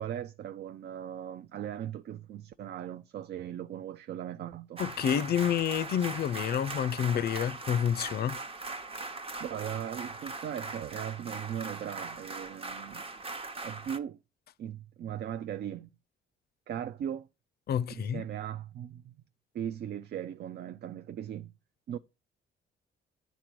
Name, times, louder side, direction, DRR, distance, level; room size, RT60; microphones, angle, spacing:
voice 1, 0.0-4.8 9.4-13.0 13.6-14.2 14.6-15.9 16.7-17.3 17.9-19.2 19.5-21.5 21.9-22.0, right 10 dB, 55° right, 0.4 m, -38 dB
voice 2, 4.8-8.4 17.7-18.2, left 9 dB, 55° left, 0.4 m, -29 dB
sound 1, 4.8-14.0, right 3 dB, 30° right, 0.9 m, -40 dB
9.0 x 4.1 x 4.6 m
cardioid pair, 90°, 20 cm